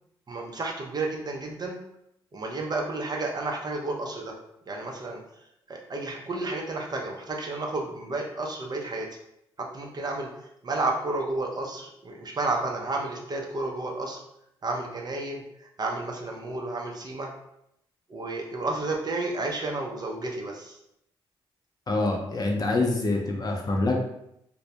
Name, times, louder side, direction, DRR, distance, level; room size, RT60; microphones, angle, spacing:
voice 1, 0.3-1.8 2.3-4.3 4.7-5.2 5.7-9.1 9.6-10.3 10.6-14.2 14.6-15.4 15.8-17.3 18.1-20.8, right 2 dB, 40° right, 0 dB, 0.6 m, -31 dB
voice 2, 21.9-24.0, left 2 dB, 35° left, 1 dB, 0.6 m, -25 dB
2.2 x 2.0 x 2.8 m, 0.78 s
supercardioid pair, 50°, 11 cm